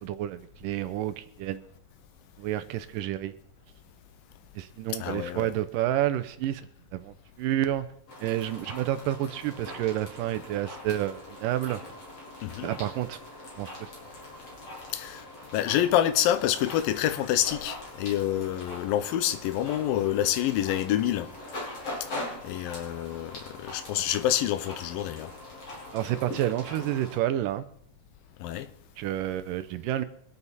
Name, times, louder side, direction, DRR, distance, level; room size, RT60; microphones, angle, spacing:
voice 1, 0.0-1.6 2.4-3.3 4.6-7.9 8.2-11.8 12.6-13.2 13.6-13.9 25.9-27.7 29.0-30.1, right 13 dB, 80° right, 2.2 m, -30 dB
voice 2, 5.0-5.5 12.4-12.7 14.9-15.2 15.5-21.3 22.4-25.3 28.4-28.7, left 12 dB, 85° left, 2.6 m, -27 dB
sound 1, 8.1-27.2, left 1 dB, 45° left, 4.4 m, -42 dB
24.5 x 8.3 x 4.1 m
omnidirectional pair, 4.0 m